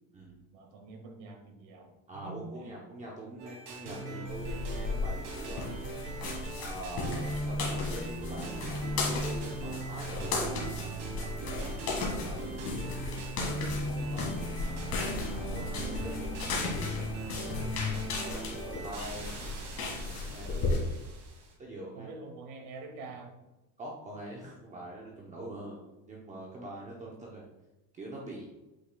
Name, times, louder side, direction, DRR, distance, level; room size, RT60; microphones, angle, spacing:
voice 1, 0.5-2.8 21.9-23.4, right 3 dB, 80° right, 3 dB, 1.7 m, -46 dB
voice 2, 2.1-5.8 6.6-13.2 13.6-14.8 15.3-17.0 17.4-19.6 20.1-20.7 21.6-22.1 23.8-25.8 26.1-27.4 27.9-28.5, right 1 dB, 20° right, -3 dB, 0.6 m, -44 dB
sound 1, 3.4-21.5, right 1 dB, 65° right, 2.3 m, -39 dB
sound 2, 4.3-20.8, left 3 dB, 45° left, 1.8 m, -35 dB
8.4 x 5.6 x 2.2 m, 1.0 s
cardioid pair, 180°, 39 cm